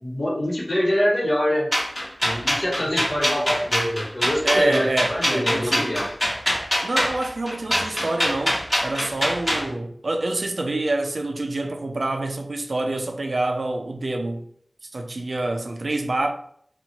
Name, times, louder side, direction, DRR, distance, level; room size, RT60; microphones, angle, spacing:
voice 1, 0.0-1.7 2.2-6.1 7.7-7.8, equal, 55° left, 1.1 m, -25 dB
sound 1, 1.7-9.7, equal, 25° left, 1.3 m, -23 dB
voice 2, 4.4-6.0 6.8-14.5 14.9-16.3, right 2 dB, 90° right, 0.4 m, -26 dB
2.9 x 2.3 x 2.7 m
wide cardioid pair, 45°, 0 cm